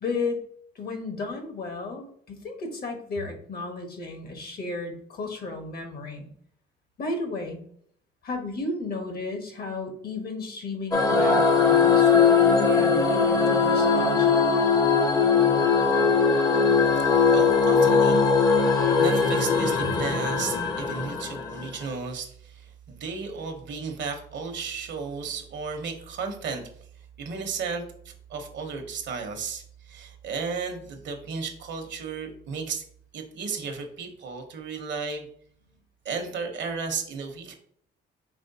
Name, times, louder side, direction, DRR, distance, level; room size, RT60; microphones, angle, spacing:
voice 1, 0.0-0.4 0.7-6.3 7.0-7.6 8.2-14.5, left 3 dB, 50° left, 5 dB, 1.1 m, -33 dB
sound 1, 10.9-21.8, left 5 dB, 20° left, 0.7 m, -20 dB
voice 2, 16.9-18.7 19.0-26.6 27.2-32.8 33.1-35.3 36.0-37.5, right 5 dB, 65° right, 4 dB, 0.9 m, -34 dB
4.9 x 3.1 x 2.7 m, 0.63 s
cardioid pair, 90°, 20 cm